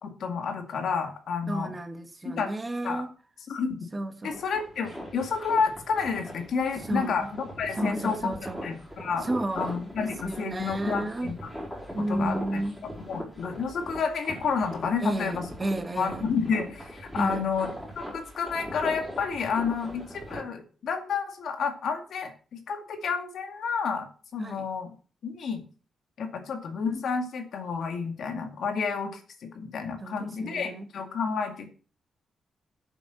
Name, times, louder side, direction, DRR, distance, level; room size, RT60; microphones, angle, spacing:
voice 1, 0.0-1.7 2.2-2.5 2.8-3.0 3.5-3.7 4.2-8.3 8.6-9.3 9.6-11.4 12.1-12.4 13.1-15.4 16.0-17.7 18.0-22.3 22.7-24.1 24.3-24.9 25.2-25.6 26.2-31.7, left 5 dB, 60° left, 2.3 m, -30 dB
voice 2, 1.5-3.1 3.9-4.4 6.9-7.3 7.7-11.4 11.9-12.8 15.0-16.3 17.1-17.5 24.4-24.7 30.0-30.9, right 1 dB, 15° right, 1.4 m, -32 dB
sound 1, 4.3-20.4, equal, ahead, 4.8 m, -40 dB
9.1 x 7.9 x 7.0 m
wide cardioid pair, 180°, 0 cm